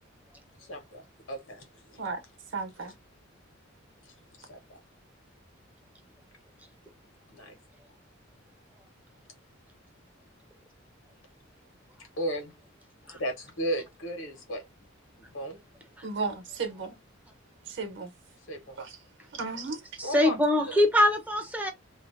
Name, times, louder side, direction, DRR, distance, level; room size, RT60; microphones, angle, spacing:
voice 1, 0.6-2.0 4.0-4.8 7.3-7.5 12.2-12.6 13.1-14.6 15.2-15.6 18.5-18.8 20.0-20.8, equal, 70° left, 1.0 m, -35 dB
voice 2, 2.5-2.9 16.0-17.0 17.7-18.1 18.8-19.0 19.3-19.8, right 4 dB, 60° right, 0.9 m, -34 dB
voice 3, 20.0-21.7, left 1 dB, 10° right, 0.5 m, -23 dB
2.5 x 2.1 x 2.5 m
head